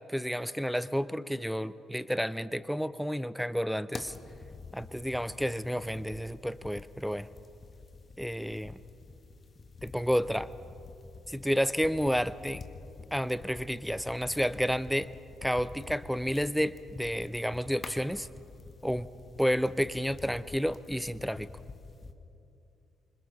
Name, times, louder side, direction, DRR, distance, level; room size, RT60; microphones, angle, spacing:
voice 1, 0.1-4.1 4.7-7.3 8.2-8.8 9.8-10.5 11.3-12.6 13.1-15.1 15.4-18.3 18.8-19.1 19.4-21.5, equal, ahead, 17 dB, 0.6 m, -30 dB
sound 1, 3.9-22.1, left 4 dB, 35° left, 1.4 m, -48 dB
26.0 x 26.0 x 4.0 m, 2.7 s
figure-of-eight pair, 45°, 0 cm